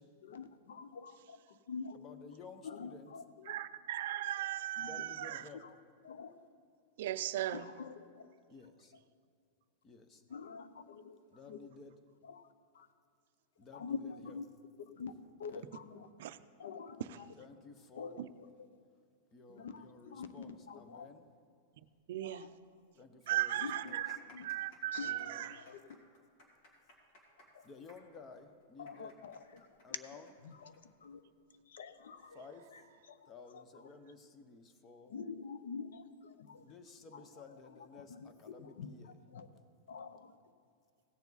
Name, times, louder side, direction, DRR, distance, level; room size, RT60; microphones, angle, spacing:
voice 1, 0.2-2.0 2.6-3.6 4.3-4.4 4.8-5.0 5.5-5.7 6.0-6.4 7.5-8.3 10.3-11.2 11.5-11.6 12.2-12.5 12.7-12.9 13.7-14.5 14.8-16.1 16.6-17.3 17.9-18.7 19.5-21.1 22.2-22.5 23.5-24.1 24.3-24.5 24.9-25.1 25.4-26.0 27.5-27.7 28.8-29.8 30.4-30.7 31.0-31.2 31.7-32.4 32.7-32.8 33.1-33.9 35.1-36.6 37.1-37.2 37.6-38.3 38.6-39.5 39.9-40.4, left 5 dB, 90° left, 12 dB, 0.7 m, -47 dB
voice 2, 1.9-3.1 4.8-5.6 8.5-8.9 9.8-10.2 11.3-11.9 13.6-14.4 15.5-15.8 17.3-18.2 19.3-21.2 22.9-24.0 25.0-25.5 27.6-29.1 29.8-30.3 32.3-32.8 33.3-35.1 36.6-39.1, left 4 dB, 20° left, 9 dB, 0.7 m, -54 dB
voice 3, 3.5-5.5 7.0-7.7 16.2-16.4 18.2-18.3 22.1-22.5 23.3-24.2 24.4-25.6, right 13 dB, 60° right, 12 dB, 0.4 m, -37 dB
sound 1, 22.8-22.9 23.5-30.8 31.1-31.2 31.9-32.2, left 1 dB, 45° left, 2.3 m, -62 dB
16.5 x 7.1 x 4.0 m, 2.3 s
supercardioid pair, 165°, 0 cm